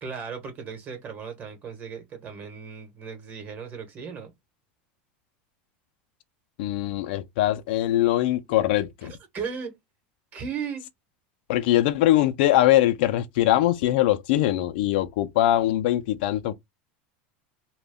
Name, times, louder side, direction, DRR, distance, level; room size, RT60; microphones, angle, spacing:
voice 1, 0.0-4.3 9.0-9.7 10.3-10.8, right 6 dB, 35° right, 1.0 m, -36 dB
voice 2, 6.6-9.1 11.5-16.5, left 14 dB, 75° left, 0.3 m, -22 dB
2.2 x 2.0 x 3.3 m
supercardioid pair, 130°, 5 cm